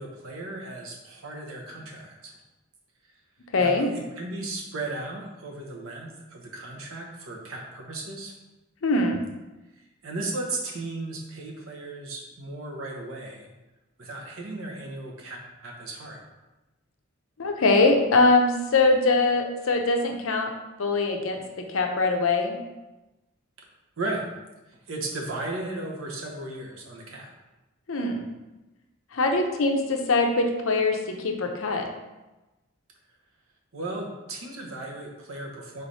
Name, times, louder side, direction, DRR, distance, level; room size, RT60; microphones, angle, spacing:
voice 1, 0.0-2.3 3.6-8.3 10.0-13.5 14.0-16.2 24.0-24.3 24.9-27.3 33.7-35.8, right 2 dB, 75° right, -1 dB, 0.9 m, -35 dB
voice 2, 3.5-3.9 8.8-9.2 17.4-20.5 20.8-21.4 21.7-22.6 27.9-28.3 29.1-31.0 31.2-31.8, left 3 dB, 70° left, 3 dB, 0.6 m, -22 dB
3.9 x 3.3 x 4.0 m, 1.1 s
head